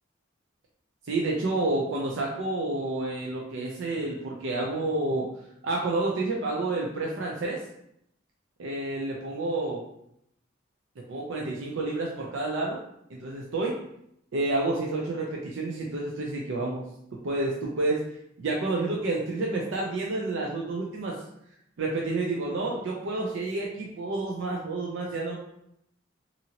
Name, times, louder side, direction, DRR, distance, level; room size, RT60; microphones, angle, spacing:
voice 1, 1.0-5.3 5.6-7.6 8.6-9.8 11.1-12.8 13.2-13.7 14.3-16.8 17.2-17.9 18.4-21.2 21.8-25.4, right 2 dB, 65° right, -2 dB, 0.4 m, -29 dB
2.7 x 2.6 x 2.8 m, 0.75 s
head